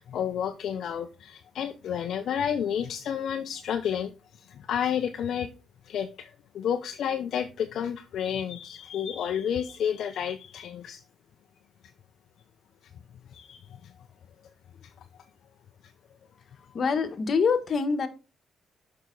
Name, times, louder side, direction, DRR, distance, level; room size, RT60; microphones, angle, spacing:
voice 1, 0.0-4.1 4.5-5.5 5.9-11.0 13.3-13.9, left 8 dB, 70° left, 6 dB, 0.5 m, -31 dB
voice 2, 16.7-18.1, left 5 dB, 50° left, 7 dB, 1.2 m, -25 dB
6.5 x 5.6 x 3.8 m, 0.31 s
cardioid pair, 90°, 0 cm